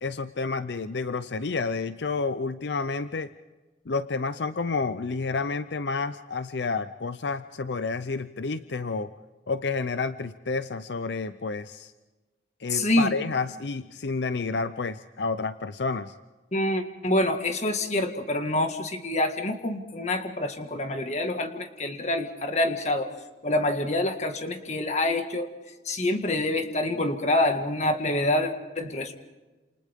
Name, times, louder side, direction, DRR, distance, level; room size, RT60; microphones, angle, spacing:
voice 1, 0.0-3.3 3.9-9.1 9.5-11.9 12.6-16.1, left 4 dB, 70° left, 12 dB, 0.6 m, -30 dB
voice 2, 12.7-13.1 16.5-23.1 23.4-25.5 25.9-29.1, left 1 dB, 40° left, 6 dB, 1.9 m, -26 dB
29.0 x 28.5 x 3.7 m, 1.2 s
head